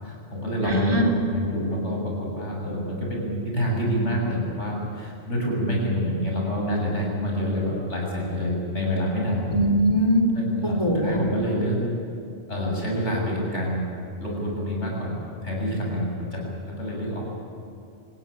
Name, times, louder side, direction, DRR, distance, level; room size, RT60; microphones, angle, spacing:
voice 1, 0.0-9.5 10.3-11.8 12.5-13.9 14.2-15.2 15.4-17.3, equal, 80° left, -2 dB, 7.7 m, -27 dB
voice 2, 0.6-1.1 9.5-10.2 10.6-11.2, equal, 25° right, 2 dB, 3.6 m, -21 dB
27.0 x 16.5 x 9.9 m, 2.6 s
omnidirectional pair, 1.2 m